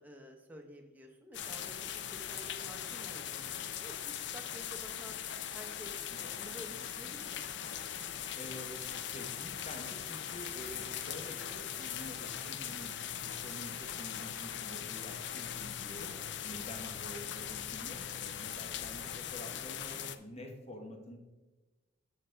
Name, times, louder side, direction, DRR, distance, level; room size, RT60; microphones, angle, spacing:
voice 1, 0.0-5.2 5.5-7.5, equal, 10° right, 2 dB, 0.8 m, -51 dB
sound 1, 1.3-20.2, left 9 dB, 60° left, 0.5 m, -40 dB
voice 2, 8.3-12.9 13.2-16.1 16.4-21.2, left 1 dB, 30° left, 3 dB, 1.2 m, -48 dB
8.2 x 6.7 x 3.4 m, 1.2 s
head